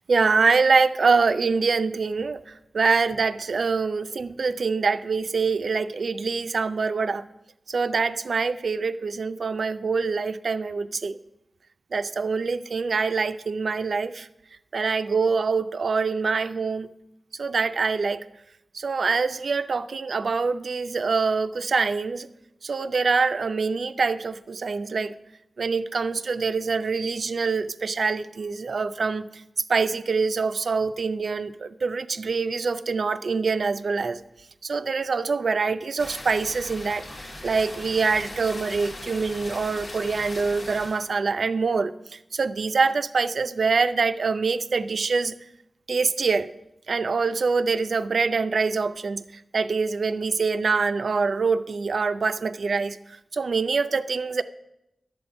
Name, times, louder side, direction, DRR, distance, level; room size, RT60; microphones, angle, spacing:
voice 1, 0.1-7.3 7.7-11.2 11.9-14.3 14.7-16.9 17.4-18.2 18.7-22.3 22.6-25.1 25.6-29.4 29.7-34.2 34.6-37.1 37.4-45.3 45.9-46.5 46.9-54.4, right 4 dB, 75° right, 11 dB, 0.4 m, -25 dB
sound 1, 36.0-41.1, left 1 dB, 70° left, 1.4 m, -39 dB
11.5 x 7.5 x 5.2 m, 0.86 s
cardioid pair, 50°, 0 cm